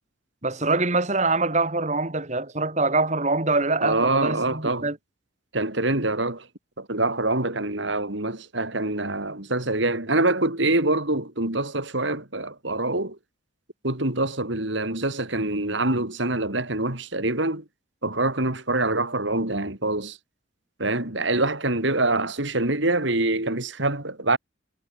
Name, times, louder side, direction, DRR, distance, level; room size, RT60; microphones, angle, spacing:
voice 1, 0.4-5.0, right 3 dB, 35° right, 2.2 m, -24 dB
voice 2, 3.8-4.9 5.5-6.5 6.8-13.2 13.8-17.6 18.0-20.2 20.8-24.4, right 2 dB, 65° right, 3.6 m, -25 dB
head